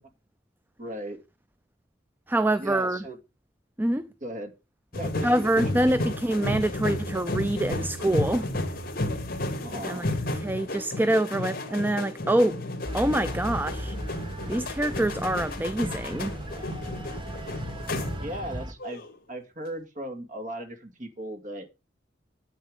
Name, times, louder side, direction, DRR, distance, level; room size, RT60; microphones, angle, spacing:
voice 1, 0.8-1.2 2.6-3.2 4.2-4.5 4.9-6.1 9.6-10.1 18.2-21.7, right 1 dB, 45° right, 2.2 m, -37 dB
voice 2, 2.3-3.0 3.8-4.1 5.2-8.5 9.8-10.1 10.3-12.6 12.9-14.0 14.5-16.3, right 1 dB, 10° right, 0.4 m, -25 dB
sound 1, 4.9-18.5 18.8-19.1, left 1 dB, 55° left, 2.3 m, -32 dB
sound 2, 12.8-18.7, equal, 25° right, 1.3 m, -37 dB
9.9 x 8.4 x 3.5 m
head